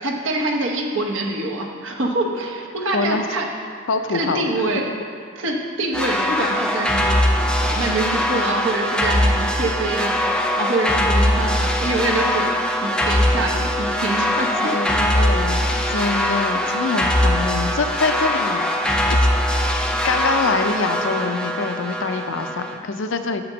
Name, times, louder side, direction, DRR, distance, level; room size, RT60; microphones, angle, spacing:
voice 1, 0.0-3.5 4.1-4.9 5.4-7.2 7.6-10.2 10.6-12.5 12.8-14.7, right 2 dB, 65° right, 1 dB, 1.0 m, -25 dB
voice 2, 2.9-3.2 3.9-4.4 14.6-18.6 19.1-19.3 20.0-23.4, left 4 dB, 65° left, 7 dB, 0.5 m, -25 dB
sound 1, 5.9-22.8, left 1 dB, 5° left, 0.4 m, -21 dB
6.8 x 6.0 x 6.2 m, 2.3 s
head